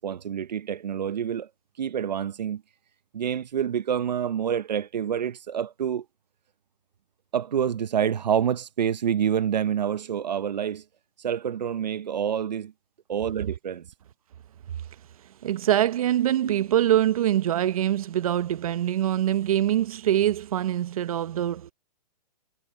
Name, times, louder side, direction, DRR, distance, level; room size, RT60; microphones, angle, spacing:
voice 1, 0.0-1.5 1.8-2.6 3.1-6.0 7.3-10.8 11.2-12.7 13.1-13.9 16.4-16.5, right 8 dB, 90° right, 0.9 m, -27 dB
voice 2, 15.4-21.7, right 12 dB, 55° right, 1.1 m, -24 dB
hypercardioid pair, 160°, 21 cm